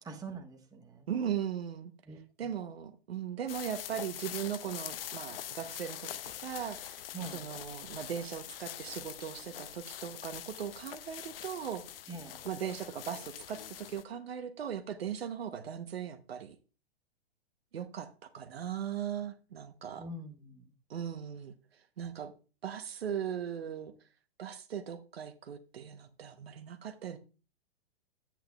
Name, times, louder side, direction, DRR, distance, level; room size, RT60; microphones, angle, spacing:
voice 1, 0.0-1.1 2.1-2.6 7.1-7.5 12.1-12.4 20.0-20.7, right 3 dB, 10° right, 1.3 m, -45 dB
voice 2, 1.1-1.9 2.4-6.1 6.4-7.0 7.3-11.8 12.4-16.6 17.7-20.0 20.9-21.5 22.0-22.3 22.6-23.9 24.4-27.2, right 8 dB, 75° right, 1.0 m, -38 dB
sound 1, 3.5-14.0, left 11 dB, 65° left, 0.6 m, -44 dB
11.0 x 8.7 x 2.3 m
hypercardioid pair, 115°, 31 cm